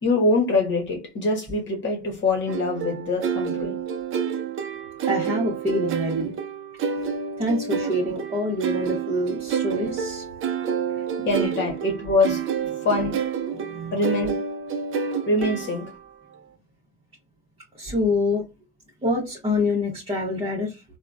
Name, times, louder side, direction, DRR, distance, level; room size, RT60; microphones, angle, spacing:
voice 1, 0.0-3.8 11.2-12.4 12.8-13.2 13.9-14.4 15.3-15.9, left 2 dB, 35° left, 1.2 m, -24 dB
sound 1, 2.5-16.1, right 7 dB, 40° right, 0.6 m, -29 dB
voice 2, 5.0-6.3 6.9-7.1 7.4-10.3 11.0-11.1 12.7-12.8 13.5-14.0 17.8-18.4 19.0-20.8, left 1 dB, 15° right, 1.1 m, -26 dB
3.6 x 2.3 x 2.3 m
hypercardioid pair, 80°, 33 cm